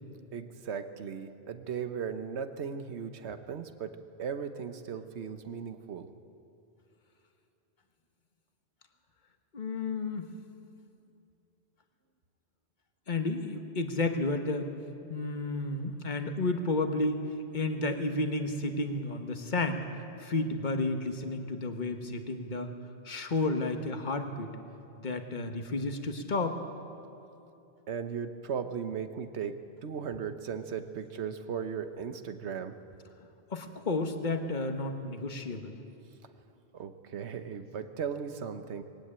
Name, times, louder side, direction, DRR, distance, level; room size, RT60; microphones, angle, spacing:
voice 1, 0.3-6.1 27.9-32.8 36.7-38.8, right 7 dB, 85° right, 9 dB, 1.3 m, -37 dB
voice 2, 9.5-10.3 13.1-14.7 15.1-17.2 17.5-19.9 20.2-22.7 23.0-24.5 25.0-26.6 33.5-35.8, left 2 dB, 45° left, 6 dB, 1.4 m, -31 dB
20.5 x 17.0 x 8.8 m, 2.8 s
omnidirectional pair, 1.1 m